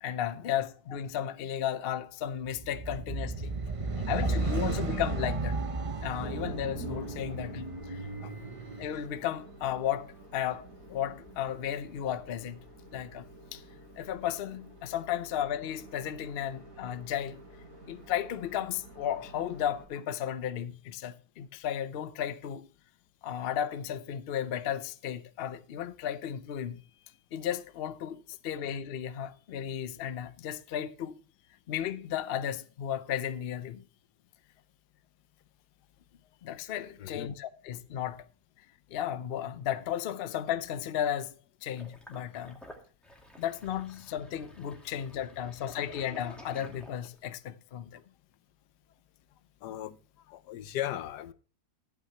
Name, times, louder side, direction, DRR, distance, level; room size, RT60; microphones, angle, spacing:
voice 1, 0.0-3.5 4.1-5.6 6.0-8.0 8.8-12.6 12.9-13.2 13.5-13.6 14.0-17.4 17.9-22.7 23.2-26.8 27.3-31.2 31.7-33.8 36.4-38.2 38.9-41.3 41.6-42.6 43.4-48.0, left 10 dB, 60° left, 0.6 m, -34 dB
sound 1, 2.5-9.0, right 3 dB, 50° right, 0.3 m, -34 dB
voice 2, 3.7-4.0 8.2-8.3 37.0-37.3 49.6-50.0 50.3-51.3, left 12 dB, 85° left, 1.3 m, -38 dB
sound 2, 6.1-19.8, right 2 dB, 70° right, 4.4 m, -48 dB
Sink (filling or washing), 41.8-47.3, equal, ahead, 2.1 m, -52 dB
14.5 x 8.7 x 2.9 m
omnidirectional pair, 1.7 m